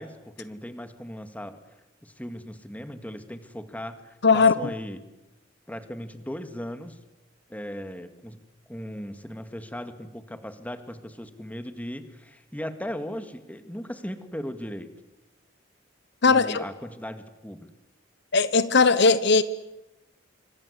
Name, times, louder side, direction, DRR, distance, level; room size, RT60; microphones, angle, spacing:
voice 1, 0.0-1.6 2.0-5.0 5.7-7.0 7.5-8.4 8.7-14.9 16.3-17.7, equal, 10° left, 2.0 m, -37 dB
voice 2, 4.2-4.5 16.2-16.6 18.3-19.4, left 4 dB, 60° left, 1.0 m, -18 dB
27.5 x 25.0 x 8.2 m
head